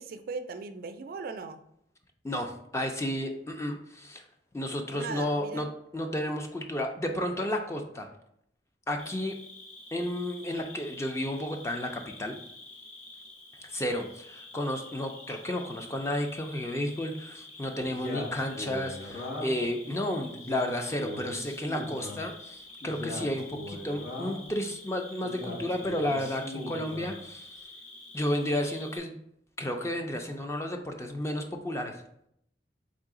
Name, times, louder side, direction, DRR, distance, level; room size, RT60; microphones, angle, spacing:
voice 1, 0.0-1.6 4.9-5.7, right 4 dB, 55° right, 9 dB, 0.3 m, -38 dB
voice 2, 2.2-4.3 4.5-5.7 5.9-8.1 8.9-9.3 9.9-12.3 13.6-27.5 28.1-29.1 29.6-32.0, left 1 dB, 15° left, 4 dB, 0.4 m, -32 dB
Cricket, 9.0-29.0, left 2 dB, 40° left, 1.0 m, -48 dB
Male speech man speaking, 17.8-19.7 20.2-22.2 22.8-24.5 25.2-27.2, left 1 dB, 80° left, 1.7 m, -39 dB
3.8 x 3.3 x 3.6 m, 0.74 s
head